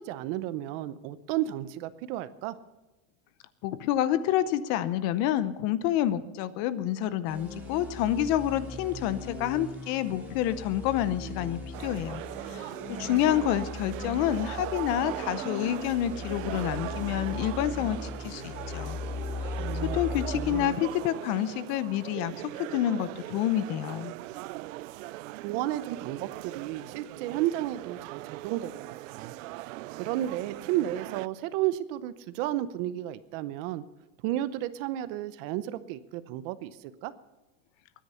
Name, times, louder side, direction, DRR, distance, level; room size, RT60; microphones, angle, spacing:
voice 1, 0.0-2.6 19.6-20.8 25.4-28.7 29.1-29.3 29.9-33.8 34.2-37.1, right 13 dB, 45° right, 14 dB, 0.8 m, -32 dB
voice 2, 3.6-19.0 19.8-22.3 22.6-24.1, left 11 dB, 40° left, 15 dB, 0.7 m, -28 dB
sound 1, 7.3-20.6, left 3 dB, 5° right, 3.4 m, -38 dB
sound 2, 11.7-31.3, right 18 dB, 75° right, 0.6 m, -40 dB
21.5 x 10.0 x 5.7 m, 1.1 s
supercardioid pair, 160°, 40 cm